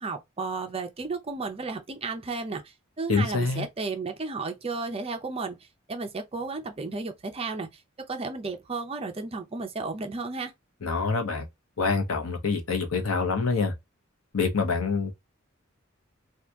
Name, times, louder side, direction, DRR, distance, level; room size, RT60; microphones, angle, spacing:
voice 1, 0.0-5.6 5.9-7.8 8.1-10.5, right 3 dB, 30° right, 0.5 m, -33 dB
voice 2, 3.1-3.7 10.8-11.5 11.8-13.7 14.3-15.1, left 4 dB, 85° left, 0.8 m, -26 dB
2.8 x 2.4 x 3.4 m
head